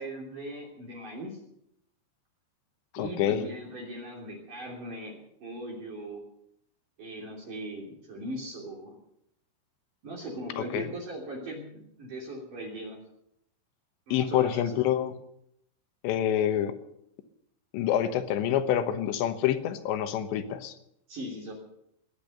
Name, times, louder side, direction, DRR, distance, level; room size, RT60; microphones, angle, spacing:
voice 1, 0.0-1.3 3.0-5.1 5.4-6.2 7.0-8.9 10.0-13.0 14.1-14.8 21.1-21.5, right 1 dB, 45° right, -3 dB, 4.3 m, -39 dB
voice 2, 2.9-3.5 10.6-10.9 14.1-15.2 16.0-16.8 17.7-20.7, left 10 dB, 75° left, 9 dB, 3.1 m, -27 dB
19.0 x 10.5 x 6.6 m, 0.77 s
omnidirectional pair, 5.6 m